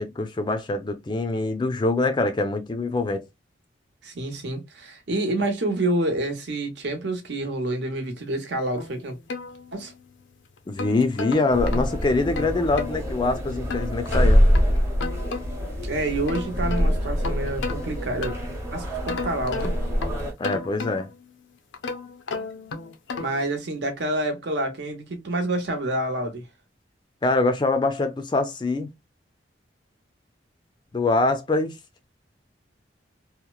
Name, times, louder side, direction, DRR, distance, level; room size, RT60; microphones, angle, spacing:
voice 1, 0.0-3.2 10.7-14.5 20.4-21.1 27.2-28.9 30.9-31.8, left 2 dB, 25° left, 0.3 m, -24 dB
voice 2, 4.0-9.2 9.7-9.9 15.8-18.4 18.7-19.7 23.2-26.4, right 1 dB, 70° right, 0.8 m, -28 dB
sound 1, 8.8-10.1 10.6-13.0 13.7-15.7 16.1-18.6 19.1-21.2 21.7-23.5, left 4 dB, 85° left, 0.4 m, -34 dB
sound 2, 11.5-20.3, equal, 15° right, 0.7 m, -25 dB
2.9 x 2.0 x 2.2 m
head